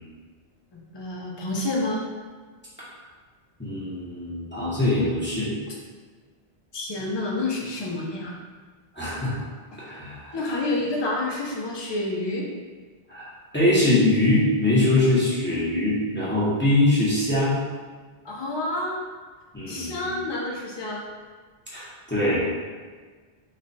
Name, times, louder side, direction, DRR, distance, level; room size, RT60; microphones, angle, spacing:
voice 1, 0.7-2.1 6.7-8.4 10.3-12.5 18.2-19.0 19.7-21.0, left 2 dB, 35° left, -2 dB, 0.5 m, -29 dB
voice 2, 3.6-5.5 8.9-9.4 9.8-10.6 13.1-17.6 19.5-20.1 21.7-22.4, left 1 dB, 10° left, -9 dB, 0.8 m, -23 dB
3.2 x 2.3 x 4.0 m, 1.5 s
omnidirectional pair, 1.1 m